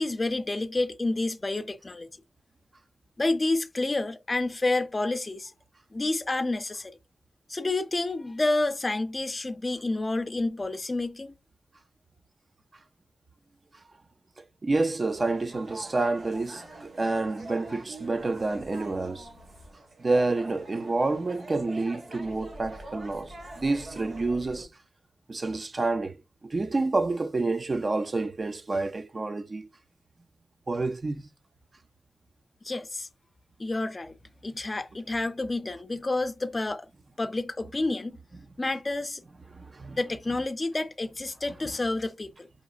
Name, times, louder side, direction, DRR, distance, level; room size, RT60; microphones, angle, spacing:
voice 1, 0.0-2.1 3.2-5.5 5.9-6.9 7.5-11.3 32.6-33.1 33.6-34.1 34.4-36.9 37.2-38.2 38.6-39.2 40.0-42.5, left 2 dB, 30° left, 0.4 m, -29 dB
voice 2, 14.4-19.3 20.0-24.7 25.3-26.2 26.4-29.7 30.7-31.3 39.5-40.0, right 3 dB, 40° right, 0.4 m, -28 dB
sound 1, 15.0-24.6, right 1 dB, 70° right, 1.5 m, -44 dB
5.0 x 2.9 x 2.4 m
wide cardioid pair, 135°, 0 cm